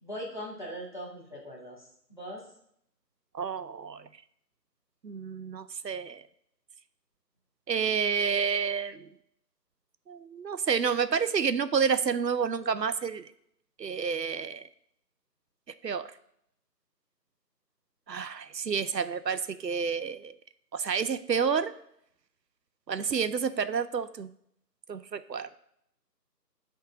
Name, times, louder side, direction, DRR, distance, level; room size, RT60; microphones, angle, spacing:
voice 1, 0.0-1.8 2.1-2.4, equal, 30° left, -4 dB, 1.5 m, -40 dB
voice 2, 3.3-4.1 5.0-6.2 7.7-9.1 10.1-13.3 13.8-14.6 15.8-16.1 18.1-20.3 20.7-21.7 22.9-24.3 24.9-25.5, right 6 dB, 80° right, 13 dB, 0.6 m, -29 dB
10.5 x 3.7 x 4.8 m, 0.71 s
figure-of-eight pair, 165°, 50 cm